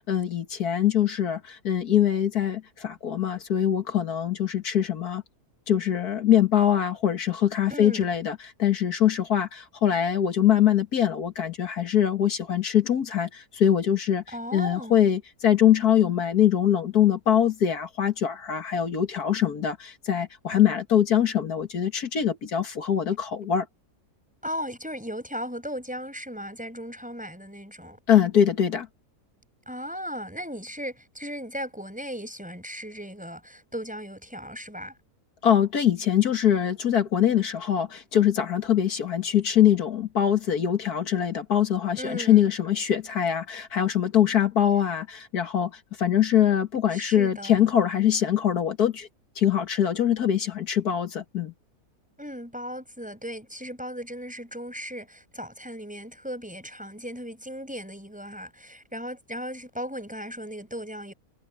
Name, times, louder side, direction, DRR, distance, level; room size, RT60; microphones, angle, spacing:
voice 1, 0.1-5.2 5.7-14.2 14.5-23.7 28.1-28.9 35.4-45.7 46.0-49.1 49.4-51.5, left 10 dB, 80° left, 2.1 m, -23 dB
voice 2, 7.7-8.1 14.3-15.0 24.4-28.0 29.6-34.9 42.0-42.4 46.9-47.6 52.2-61.1, equal, 5° right, 5.1 m, -37 dB
omnidirectional pair, 1.6 m